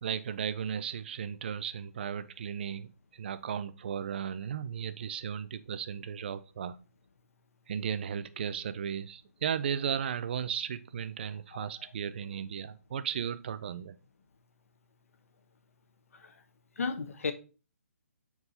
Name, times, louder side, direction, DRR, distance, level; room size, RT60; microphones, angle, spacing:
voice 1, 0.0-6.8 7.7-14.0, right 8 dB, 45° right, 13 dB, 0.3 m, -35 dB
voice 2, 16.8-17.3, left 4 dB, 65° left, 8 dB, 1.0 m, -33 dB
5.3 x 4.6 x 4.1 m, 0.35 s
hypercardioid pair, 160°, 8 cm